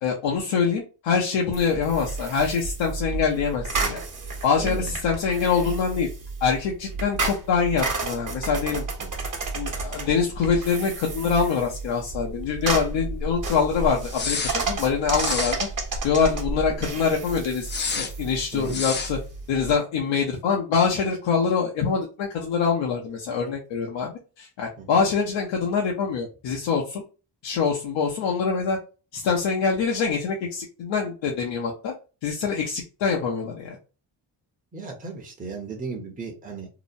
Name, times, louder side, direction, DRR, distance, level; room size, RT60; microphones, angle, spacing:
voice 1, 0.0-4.0 4.4-6.1 6.4-8.8 9.5-15.7 16.0-19.2 19.5-27.0 27.4-28.8 29.1-31.9 32.2-33.8, left 6 dB, 75° left, -1 dB, 0.7 m, -24 dB
sound 1, 1.5-19.7, right 3 dB, 45° right, 1.1 m, -31 dB
voice 2, 4.6-5.0 9.0-9.1 18.5-18.8 24.8-25.0 34.7-36.7, right 4 dB, 20° right, 0 dB, 0.8 m, -35 dB
sound 2, 14.1-14.6 15.1-15.6 17.6-18.1 18.7-19.1, left 5 dB, 25° left, 0.5 m, -29 dB
2.9 x 2.0 x 2.5 m, 0.33 s
cardioid pair, 70°, 45 cm